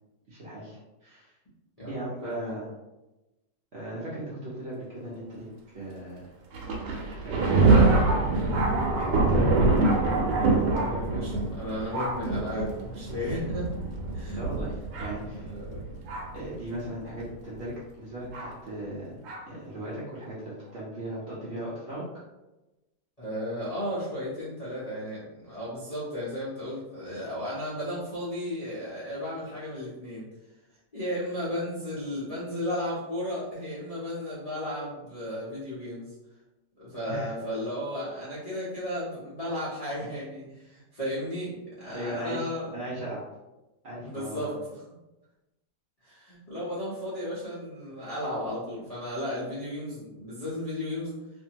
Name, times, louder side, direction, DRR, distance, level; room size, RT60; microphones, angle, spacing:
voice 1, 0.3-1.3 1.8-2.7 3.7-5.5 5.7-6.3 7.2-8.6 8.9-9.4 10.3-10.7 14.4-15.5 16.3-19.2 19.5-22.1 37.1-37.3 41.8-42.5 42.7-43.2 43.8-44.5, right 1 dB, 60° right, -8 dB, 0.7 m, -37 dB
voice 2, 1.8-2.6 10.5-13.7 14.1-14.4 15.4-15.8 23.2-30.2 30.9-36.1 36.7-42.7 44.0-44.5 46.0-51.1, left 1 dB, 75° left, -10 dB, 0.3 m, -34 dB
Thunder, 6.5-16.5 17.2-17.3 18.3-18.5 19.2-19.4, right 3 dB, 80° right, 1.2 m, -25 dB
2.6 x 2.5 x 2.8 m, 1.0 s
omnidirectional pair, 1.9 m